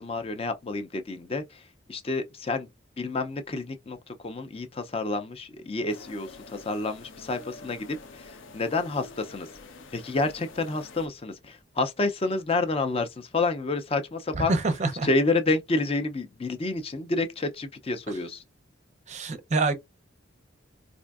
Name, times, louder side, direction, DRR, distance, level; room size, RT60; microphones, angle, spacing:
voice 1, 0.0-2.7 3.0-9.5 9.9-14.5 15.0-18.4, left 3 dB, 30° left, 0.4 m, -29 dB
sound 1, 5.9-11.1, left 3 dB, 70° left, 0.6 m, -47 dB
voice 2, 14.3-15.1 19.1-19.7, right 3 dB, 35° right, 0.5 m, -26 dB
4.2 x 2.5 x 2.3 m
head